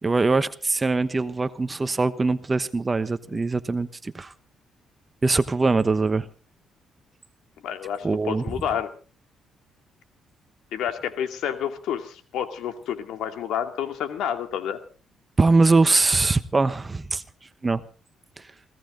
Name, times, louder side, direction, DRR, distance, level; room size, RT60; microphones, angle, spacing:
voice 1, 0.0-4.3 5.2-6.3 8.0-8.4 15.4-17.2 17.6-17.8 18.4-18.5, right 3 dB, 25° right, 1.1 m, -22 dB
voice 2, 7.6-8.9 10.7-14.8, left 9 dB, 80° left, 2.5 m, -29 dB
21.0 x 17.0 x 3.9 m
cardioid pair, 90°, 0 cm